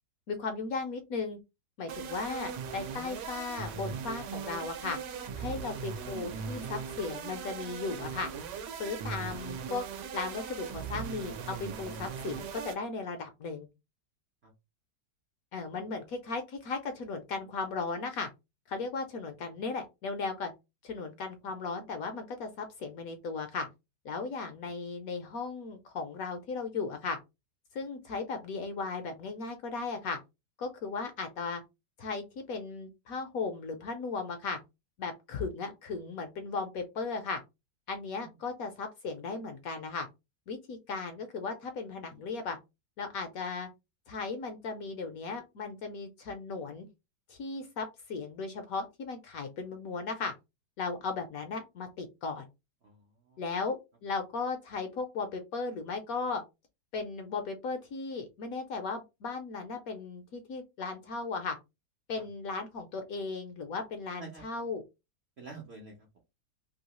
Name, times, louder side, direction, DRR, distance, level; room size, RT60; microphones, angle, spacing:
voice 1, 0.3-1.4 1.8-5.0 5.4-8.3 8.8-9.9 10.1-13.7 15.5-18.3 18.7-20.5 20.8-23.7 24.0-27.2 27.7-30.2 30.6-31.6 32.0-34.6 35.0-37.4 37.9-40.1 40.5-42.6 43.0-43.7 44.1-46.9 47.3-50.3 50.8-52.5 53.4-56.4 56.9-61.6 62.1-64.8, left 4 dB, 70° left, 6 dB, 0.9 m, -36 dB
sound 1, 1.9-12.8, right 6 dB, 85° right, 1.2 m, -39 dB
voice 2, 52.8-53.4 62.2-62.3 64.2-64.6 65.4-66.2, right 4 dB, 60° right, 1 dB, 0.6 m, -50 dB
3.0 x 2.7 x 2.9 m, 0.24 s
omnidirectional pair, 1.8 m